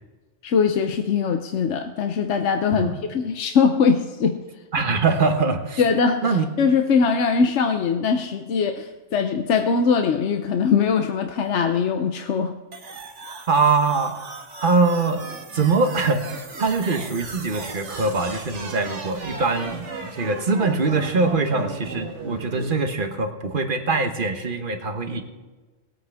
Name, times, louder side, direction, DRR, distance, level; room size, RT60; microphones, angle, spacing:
voice 1, 0.4-4.4 5.8-12.5, left 5 dB, 80° left, 6 dB, 1.1 m, -21 dB
voice 2, 4.7-5.8 6.2-6.5 13.5-14.2 14.6-25.2, right 4 dB, 50° right, 6 dB, 1.3 m, -23 dB
sound 1, 12.7-22.7, right 3 dB, 90° right, 1.7 m, -36 dB
20.0 x 8.7 x 3.5 m, 1.3 s
omnidirectional pair, 1.2 m